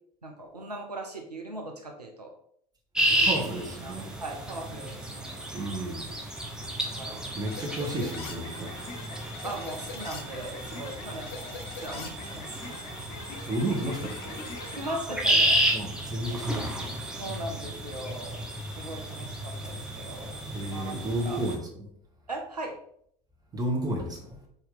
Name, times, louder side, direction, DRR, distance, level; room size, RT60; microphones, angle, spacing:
voice 1, 0.2-2.3 3.1-3.4 3.8-5.4 7.0-7.3 9.4-12.9 14.7-15.7 17.2-18.4 18.8-20.4 20.7-21.0 21.2-21.4 22.3-22.8, right 2 dB, 90° right, 0.5 m, -39 dB
sound 1, 2.9-21.6, right 1 dB, 5° right, 0.9 m, -32 dB
voice 2, 3.2-4.1 5.5-6.0 7.3-8.7 13.5-14.4 15.7-16.9 20.5-21.9 23.5-24.4, right 1 dB, 20° right, 1.2 m, -32 dB
sound 2, 7.5-14.9, left 3 dB, 50° left, 0.8 m, -42 dB
4.4 x 2.7 x 3.9 m
figure-of-eight pair, 65°, 20 cm